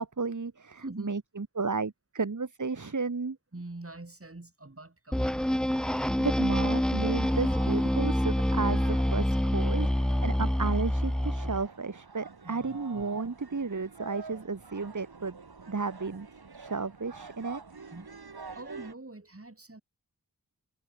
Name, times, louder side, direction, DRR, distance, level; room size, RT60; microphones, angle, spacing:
voice 1, 0.0-3.4 5.8-15.4 15.7-16.3 16.5-17.6, right 4 dB, 50° right, 2.3 m, -33 dB
voice 2, 0.8-1.2 3.5-5.5 12.4-12.8 17.9-18.1 18.5-19.8, right 2 dB, 35° right, 6.7 m, -44 dB
sound 1, 5.1-11.6, equal, ahead, 0.5 m, -27 dB
sound 2, 7.0-18.9, right 4 dB, 75° right, 5.0 m, -47 dB
wide cardioid pair, 45°, 38 cm